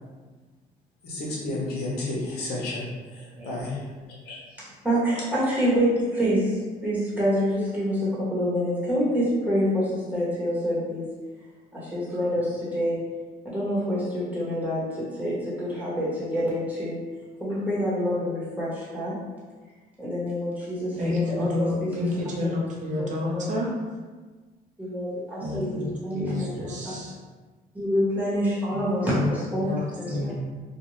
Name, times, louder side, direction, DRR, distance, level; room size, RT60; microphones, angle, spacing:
voice 1, 1.0-3.8 4.2-4.4, left 2 dB, 90° left, -4 dB, 0.9 m, -32 dB
voice 2, 4.6-11.0 11.7-13.0 13.4-17.0 17.4-19.2 20.0-22.1 23.0-23.1 23.3-23.4 24.8-27.0 27.7-30.4, equal, 10° right, -8 dB, 1.1 m, -27 dB
voice 3, 20.9-23.7 25.4-25.9 26.1-27.1 28.7-28.8 29.1-29.3 29.6-30.4, left 2 dB, 50° right, -3 dB, 0.7 m, -29 dB
2.5 x 2.4 x 3.1 m, 1.3 s
cardioid pair, 120°, 16 cm